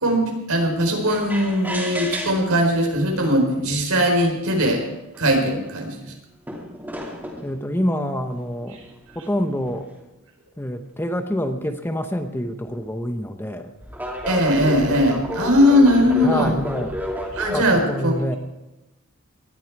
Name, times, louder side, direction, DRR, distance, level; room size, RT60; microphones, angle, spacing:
voice 1, 0.0-4.8 5.2-6.0 14.3-16.5 17.3-18.1, equal, 85° right, 2 dB, 4.2 m, -19 dB
sound 1, 1.1-2.7 3.6-3.7 4.5-4.6 4.8-5.7 6.5-7.5 8.5-10.0 12.6-12.8 13.8-17.7, left 1 dB, 10° right, 2.7 m, -32 dB
voice 2, 7.4-8.8 9.1-9.9 10.6-13.7 16.2-17.0 17.5-18.4, equal, 10° left, 7 dB, 0.8 m, -26 dB
19.0 x 12.5 x 4.7 m, 0.99 s
head